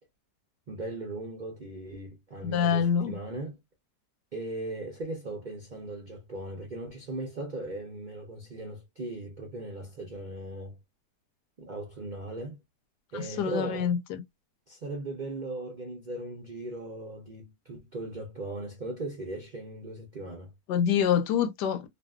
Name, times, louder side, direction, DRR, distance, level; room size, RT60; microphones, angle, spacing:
voice 1, 0.7-3.6 4.3-10.8 11.6-12.6 13.1-13.9 14.7-20.5, right 2 dB, 65° right, 0.4 m, -38 dB
voice 2, 2.4-3.1 13.1-14.2 20.7-21.9, left 8 dB, 90° left, 1.2 m, -26 dB
2.5 x 2.5 x 2.3 m
omnidirectional pair, 1.7 m